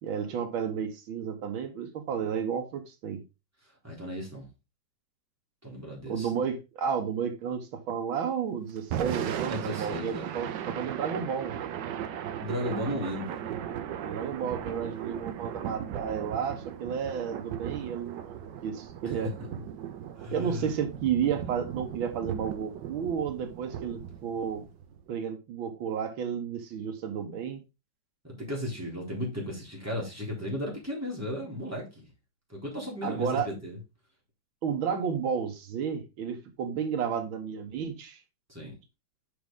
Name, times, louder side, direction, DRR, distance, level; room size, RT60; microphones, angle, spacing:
voice 1, 0.0-3.2 6.1-11.5 14.0-19.3 20.3-24.7 25.1-27.6 33.0-33.5 34.6-38.2, right 7 dB, 85° right, 1.9 m, -32 dB
voice 2, 3.8-4.5 5.6-6.3 9.5-10.3 12.4-13.4 19.0-19.2 20.2-20.7 28.2-32.1 32.5-33.8 38.5-38.7, left 1 dB, 5° right, 3.7 m, -35 dB
Thunder / Rain, 8.8-25.0, right 9 dB, 70° right, 1.3 m, -37 dB
7.0 x 6.2 x 3.8 m
omnidirectional pair, 2.2 m